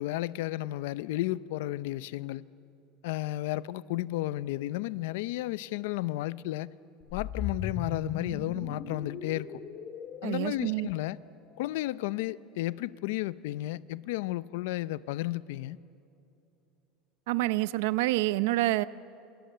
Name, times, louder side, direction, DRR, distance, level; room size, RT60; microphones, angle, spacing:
voice 1, 0.0-2.4 3.0-6.7 7.1-9.5 10.2-11.2 11.6-15.8, left 16 dB, 80° left, 0.6 m, -33 dB
sound 1, 7.0-11.3, left 7 dB, 35° left, 2.2 m, -38 dB
voice 2, 10.2-10.9 17.3-18.8, right 18 dB, 75° right, 0.7 m, -27 dB
29.0 x 27.0 x 6.8 m
cardioid pair, 175°, 0 cm